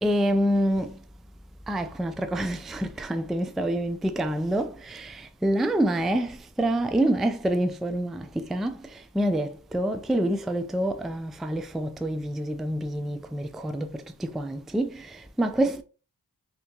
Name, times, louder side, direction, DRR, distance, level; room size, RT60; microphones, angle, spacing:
voice 1, 0.0-0.9 1.7-15.8, right 1 dB, ahead, 0.3 m, -27 dB
3.3 x 2.9 x 2.8 m
cardioid pair, 50°, 42 cm